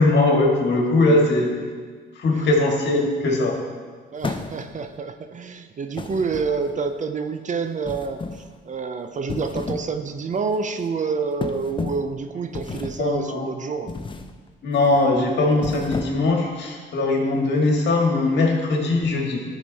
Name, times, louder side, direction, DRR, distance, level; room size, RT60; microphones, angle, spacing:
voice 1, 0.0-1.5 2.2-3.6 13.0-13.5 14.6-19.4, left 2 dB, 60° left, 0 dB, 1.8 m, -20 dB
voice 2, 4.1-13.9, right 5 dB, 40° right, 8 dB, 0.6 m, -28 dB
sound 1, 4.2-4.9 6.0-6.9 7.8-8.5 9.1-10.0 10.3-10.6 11.4-12.1 12.5-13.1 13.9-14.3 14.7-15.0 15.5-16.4, left 4 dB, 25° left, 0.6 m, -32 dB
12.0 x 5.1 x 4.1 m, 1.5 s
cardioid pair, 90°, 20 cm